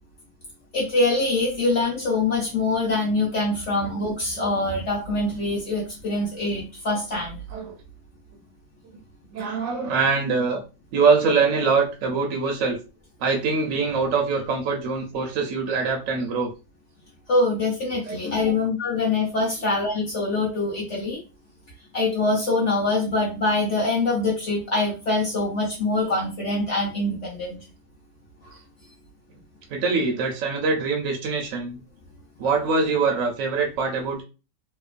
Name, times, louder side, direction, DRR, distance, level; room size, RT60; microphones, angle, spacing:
voice 1, 0.7-7.4 17.3-21.2 21.9-27.6 28.4-28.5, left 2 dB, 60° left, -2 dB, 0.8 m, -24 dB
voice 2, 9.3-10.6 10.9-12.8 13.2-16.5 18.1-18.2 18.5-18.6 29.7-31.8 32.4-34.2, right 4 dB, 70° right, 1 dB, 0.7 m, -23 dB
2.9 x 2.0 x 2.4 m, 0.32 s
omnidirectional pair, 1.9 m